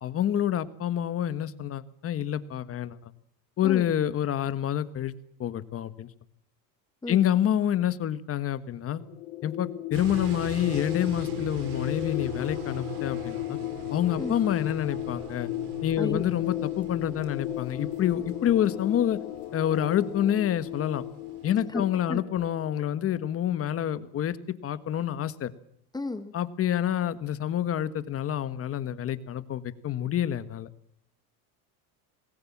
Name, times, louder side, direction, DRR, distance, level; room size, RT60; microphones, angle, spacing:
voice 1, 0.0-3.1 3.6-5.1 5.4-6.1 7.1-9.0 9.4-13.6 13.9-15.5 15.8-19.2 19.5-21.0 21.4-24.4 24.6-25.5 26.3-30.7, left 10 dB, 35° left, 12 dB, 1.5 m, -28 dB
sound 1, 9.0-23.3, left 15 dB, 75° left, 2.2 m, -35 dB
sound 2, 9.9-21.5, right 4 dB, 85° right, 5.3 m, -42 dB
voice 2, 21.7-22.2 25.9-26.3, left 3 dB, 10° left, 9 dB, 1.5 m, -33 dB
27.0 x 20.0 x 7.4 m, 0.69 s
cardioid pair, 140°, 41 cm